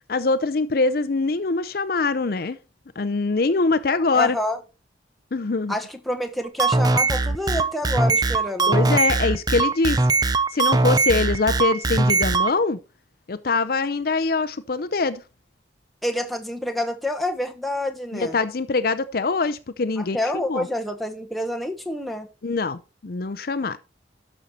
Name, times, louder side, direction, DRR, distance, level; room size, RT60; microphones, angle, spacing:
voice 1, 0.1-2.6 3.0-4.4 5.3-5.7 8.7-10.0 10.5-12.8 13.3-15.2 18.1-20.7 22.4-23.8, left 3 dB, 55° left, 0.5 m, -23 dB
voice 2, 4.1-4.6 5.7-8.8 16.0-18.3 20.0-22.3, left 1 dB, ahead, 1.1 m, -28 dB
sound 1, 6.4-12.5, right 3 dB, 20° right, 0.6 m, -20 dB
12.0 x 6.3 x 4.2 m
head